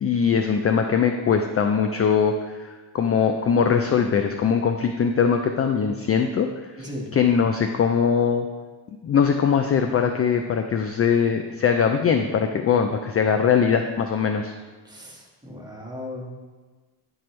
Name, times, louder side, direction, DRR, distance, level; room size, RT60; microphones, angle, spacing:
voice 1, 0.0-6.5 6.8-8.5 9.0-14.5, left 6 dB, 35° left, 6 dB, 0.4 m, -21 dB
voice 2, 6.8-7.1 14.8-16.3, left 1 dB, 10° right, -3 dB, 1.6 m, -36 dB
9.8 x 4.6 x 3.2 m, 1.3 s
cardioid pair, 85°, 45 cm